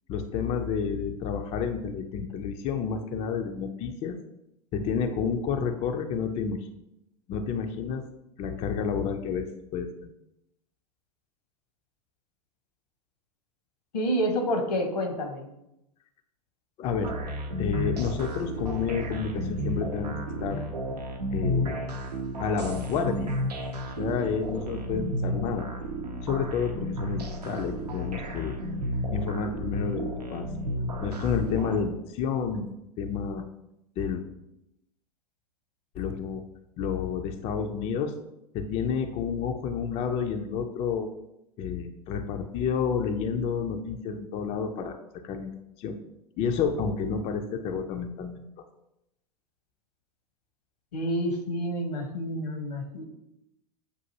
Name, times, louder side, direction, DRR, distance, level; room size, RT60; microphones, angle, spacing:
voice 1, 0.1-4.2 4.7-6.6 7.3-8.0 8.4-9.9 16.8-17.1 17.6-20.2 20.4-20.6 21.3-21.7 22.4-23.3 24.0-25.7 26.2-28.5 29.1-30.5 31.0-32.7 33.0-33.4 34.0-34.2 36.0-36.4 36.8-38.1 38.5-41.1 41.6-45.0 45.2-45.5 45.8-45.9 46.4-48.4, left 6 dB, 30° left, 6 dB, 0.4 m, -30 dB
voice 2, 13.9-15.5 50.9-53.0, equal, 80° left, 4 dB, 0.9 m, -28 dB
sound 1, 17.0-31.8, equal, 85° right, 0.6 m, -33 dB
6.6 x 2.5 x 2.7 m, 0.85 s
hypercardioid pair, 95°, 20 cm